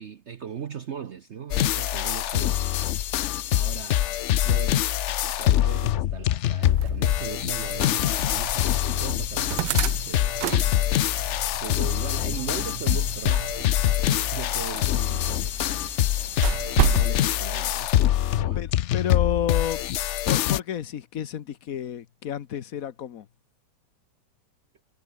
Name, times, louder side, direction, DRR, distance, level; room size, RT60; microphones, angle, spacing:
voice 1, 0.0-2.6 3.5-4.2 4.4-4.8 5.2-10.4 11.6-13.6 14.0-15.6 17.0-17.9 18.4-18.7, right 8 dB, 50° right, 0.9 m, -38 dB
sound 1, 1.5-20.6, left 12 dB, 85° left, 0.6 m, -24 dB
sound 2, 6.6-17.1, right 15 dB, 80° right, 1.3 m, -33 dB
voice 2, 18.5-19.8 20.3-23.3, left 9 dB, 55° left, 1.3 m, -30 dB
omnidirectional pair, 1.9 m